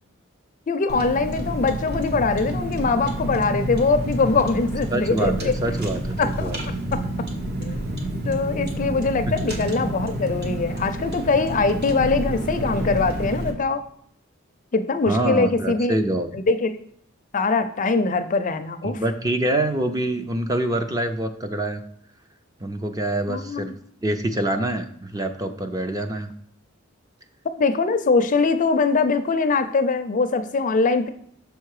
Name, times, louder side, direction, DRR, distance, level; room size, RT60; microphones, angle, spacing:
voice 1, 0.7-5.5 6.2-6.5 7.6-7.8 8.2-13.8 14.7-16.0 16.3-16.7 17.3-19.0 23.3-23.7 27.6-31.1, left 4 dB, 40° left, 10 dB, 0.5 m, -22 dB
Car, 0.9-13.5, right 1 dB, 50° right, 1.2 m, -29 dB
voice 2, 4.9-6.6 9.3-9.4 15.1-16.3 18.8-21.8 22.6-23.7 24.0-26.3, right 1 dB, 20° right, 7 dB, 0.5 m, -25 dB
6.2 x 4.6 x 4.8 m, 0.66 s
head